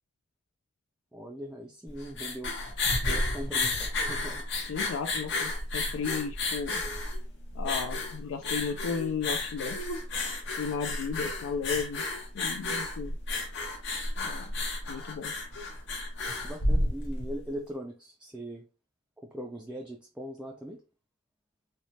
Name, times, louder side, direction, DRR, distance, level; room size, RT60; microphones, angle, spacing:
voice 1, 1.1-2.6 3.0-4.4 16.4-18.7 19.2-20.8, equal, 5° right, 0.3 m, -40 dB
sound 1, 1.9-17.3, left 2 dB, 60° left, 0.7 m, -32 dB
voice 2, 4.7-6.8 7.5-9.8 10.6-12.0 12.3-13.2 14.2-14.5 14.9-15.3, left 6 dB, 80° left, 0.3 m, -34 dB
3.2 x 2.1 x 2.7 m
head